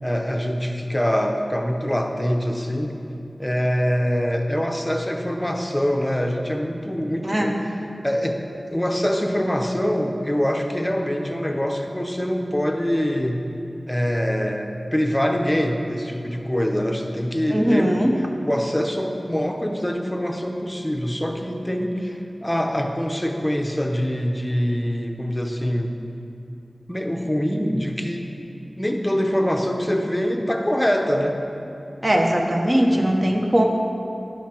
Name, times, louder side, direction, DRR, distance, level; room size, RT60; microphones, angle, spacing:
voice 1, 0.0-3.0 3.4-7.6 8.0-8.4 8.7-13.4 13.9-18.0 18.5-25.9 26.9-28.3 28.8-31.4, equal, 15° left, 3 dB, 0.8 m, -24 dB
voice 2, 7.2-7.5 17.5-18.1 32.0-33.7, equal, 30° right, 1 dB, 1.0 m, -20 dB
10.5 x 5.7 x 4.4 m, 2.7 s
wide cardioid pair, 60°, 0 cm